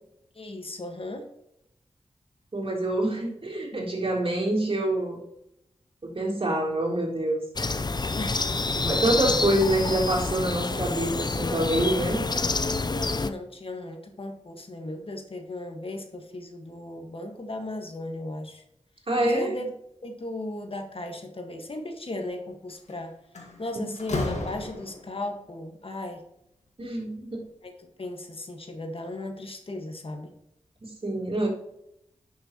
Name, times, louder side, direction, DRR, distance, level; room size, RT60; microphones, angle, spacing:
voice 1, 0.3-1.2 8.2-8.3 9.2-9.4 13.2-18.6 19.2-19.7 20.0-23.1 23.6-26.2 27.6-27.7 28.0-30.3, left 1 dB, 55° left, 4 dB, 1.6 m, -36 dB
voice 2, 2.5-5.2 6.0-7.4 8.7-12.2 19.1-19.5 23.7-23.9 26.8-27.4 30.8-31.5, right 1 dB, 55° right, -2 dB, 3.4 m, -26 dB
sound 1, 7.6-13.3, left 3 dB, 40° left, 0.6 m, -28 dB
Slam, 22.7-22.9 23.4-25.2, left 2 dB, 85° left, 2.0 m, -33 dB
11.0 x 6.5 x 3.0 m, 0.79 s
cardioid pair, 50°, 12 cm